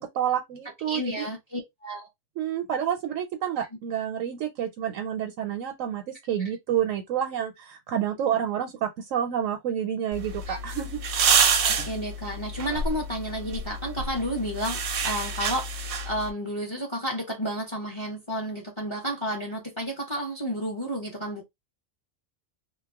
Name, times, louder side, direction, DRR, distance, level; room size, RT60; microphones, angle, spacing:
voice 1, 0.0-1.3 2.4-11.0, right 9 dB, 85° right, 0.9 m, -29 dB
voice 2, 0.9-2.1 10.5-10.6 11.6-21.4, equal, 30° left, 0.6 m, -31 dB
sound 1, 10.1-16.3, right 5 dB, 60° right, 0.6 m, -27 dB
2.3 x 2.1 x 3.5 m
omnidirectional pair, 1.3 m